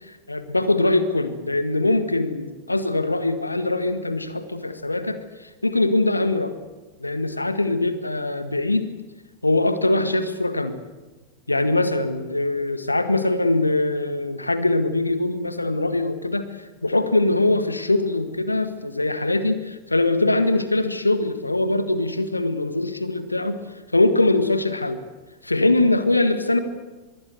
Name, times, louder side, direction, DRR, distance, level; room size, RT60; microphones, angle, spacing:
voice 1, 0.3-6.5 7.0-8.9 9.4-10.8 11.5-16.5 16.8-23.6 23.9-25.0 25.4-26.6, left 2 dB, 85° left, 10 dB, 1.7 m, -22 dB
24.5 x 22.5 x 8.0 m, 1.2 s
figure-of-eight pair, 90°, 0 cm